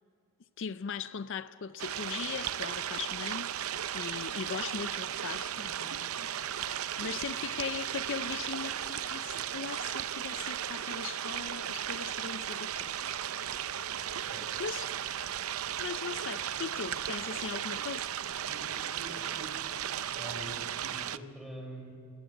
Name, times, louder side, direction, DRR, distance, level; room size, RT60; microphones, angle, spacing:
voice 1, 0.6-3.5 3.9-6.1 6.4-13.2 14.6-14.9 15.8-18.2, left 6 dB, 60° left, 0.5 m, -39 dB
sound 1, 1.8-21.2, right 10 dB, 75° right, 0.6 m, -36 dB
voice 2, 18.4-19.5 20.2-20.6 20.9-21.9, right 1 dB, ahead, 4.8 m, -45 dB
19.5 x 19.0 x 7.6 m
head